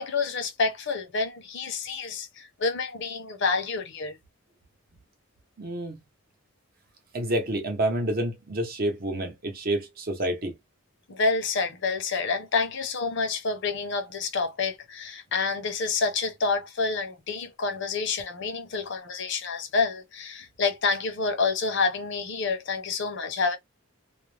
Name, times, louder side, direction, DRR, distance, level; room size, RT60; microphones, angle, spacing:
voice 1, 0.0-4.2 11.1-23.6, left 4 dB, 55° left, 0.6 m, -28 dB
voice 2, 5.6-6.0 7.1-10.5, right 1 dB, 45° right, 0.8 m, -28 dB
2.4 x 2.1 x 3.2 m
head